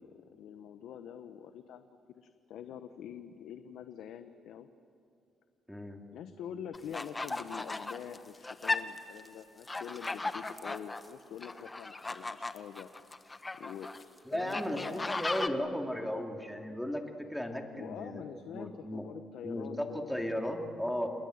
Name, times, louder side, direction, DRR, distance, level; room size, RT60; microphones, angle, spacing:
voice 1, 0.0-4.7 6.1-12.9 13.5-13.9 14.3-15.3 17.7-20.2, left 9 dB, 80° left, 9 dB, 0.9 m, -45 dB
voice 2, 5.7-6.0 14.3-18.2 18.5-19.0 19.4-21.1, equal, 5° left, 2 dB, 2.9 m, -35 dB
sound 1, 6.7-9.3 9.6-11.1 11.4-14.0 14.5-15.5, left 2 dB, 20° left, 1.2 m, -36 dB
30.0 x 19.0 x 7.9 m, 2.6 s
cardioid pair, 90°, 0 cm